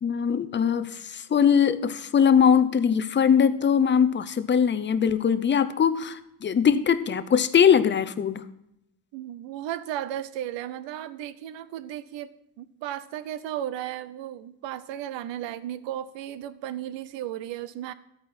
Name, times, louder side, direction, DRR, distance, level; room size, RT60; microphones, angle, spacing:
voice 1, 0.0-8.4, left 7 dB, 25° left, 13 dB, 0.7 m, -21 dB
voice 2, 9.1-17.9, right 11 dB, 70° right, 15 dB, 0.8 m, -35 dB
13.0 x 8.8 x 4.3 m, 0.81 s
cardioid pair, 100°, 46 cm